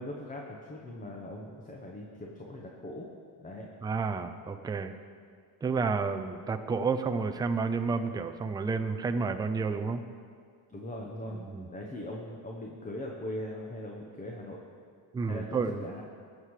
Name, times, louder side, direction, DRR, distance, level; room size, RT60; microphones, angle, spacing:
voice 1, 0.0-3.1 3.4-3.7 10.7-11.4 11.7-14.6 15.2-16.0, left 1 dB, 15° left, -1 dB, 1.0 m, -40 dB
voice 2, 3.8-4.9 5.6-10.0 11.3-11.7 15.1-15.8, right 4 dB, 10° right, 7 dB, 0.3 m, -30 dB
20.5 x 7.5 x 4.8 m, 2.1 s
cardioid pair, 160°, 45 cm